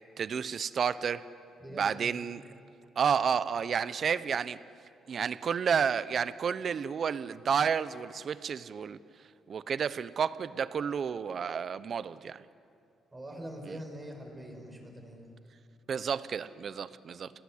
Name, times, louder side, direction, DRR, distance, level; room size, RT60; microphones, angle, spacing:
voice 1, 0.2-1.2 1.7-2.4 3.0-4.6 5.1-9.0 9.5-12.4 15.9-17.3, right 7 dB, 50° right, 15 dB, 0.9 m, -31 dB
voice 2, 1.6-2.1 13.1-15.3, right 1 dB, 20° right, 2 dB, 6.1 m, -43 dB
27.5 x 19.0 x 10.0 m, 2.5 s
cardioid pair, 90°, 0 cm